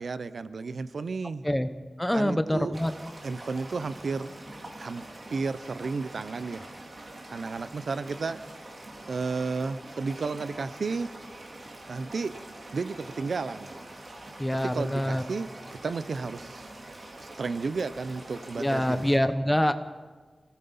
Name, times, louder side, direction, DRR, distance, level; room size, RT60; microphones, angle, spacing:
voice 1, 0.0-1.5 2.1-2.8 3.2-4.3 4.8-6.7 7.3-8.4 9.1-11.1 11.9-12.4 12.7-13.7 14.5-16.7 17.2-19.1, right 4 dB, 85° right, 13 dB, 0.7 m, -33 dB
voice 2, 2.0-2.9 14.4-15.2 18.6-19.7, equal, 10° left, 9 dB, 1.2 m, -25 dB
sound 1, 2.7-19.2, right 1 dB, 50° right, 3.5 m, -45 dB
26.5 x 18.0 x 5.5 m, 1.4 s
wide cardioid pair, 95°, 0 cm